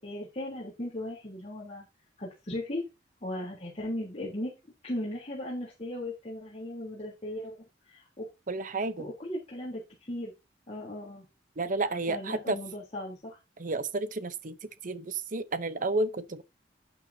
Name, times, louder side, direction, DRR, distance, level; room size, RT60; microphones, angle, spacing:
voice 1, 0.0-1.8 2.2-2.8 3.2-4.5 4.8-7.6 7.9-8.3 9.0-10.3 10.7-11.2 12.1-13.4, left 1 dB, 35° left, 3.5 m, -37 dB
voice 2, 8.5-9.1 11.6-12.6 13.6-14.6 14.8-16.4, right 2 dB, 45° right, 0.8 m, -31 dB
11.5 x 8.9 x 2.8 m
head